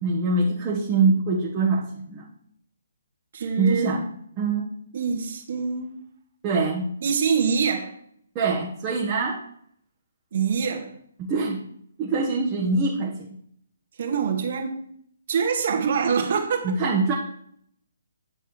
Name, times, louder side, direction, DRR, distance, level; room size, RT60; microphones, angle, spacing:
voice 1, 0.0-2.2 3.6-4.1 4.4-4.7 6.4-6.9 8.3-9.4 11.2-11.6 12.0-13.3 16.6-17.1, right 3 dB, 25° right, 1.6 m, -24 dB
voice 2, 3.3-4.0 4.9-5.9 7.0-8.0 10.3-10.9 14.0-14.8 15.3-16.7, right 6 dB, 50° right, 2.0 m, -25 dB
10.0 x 6.5 x 4.8 m
figure-of-eight pair, 140°, 0 cm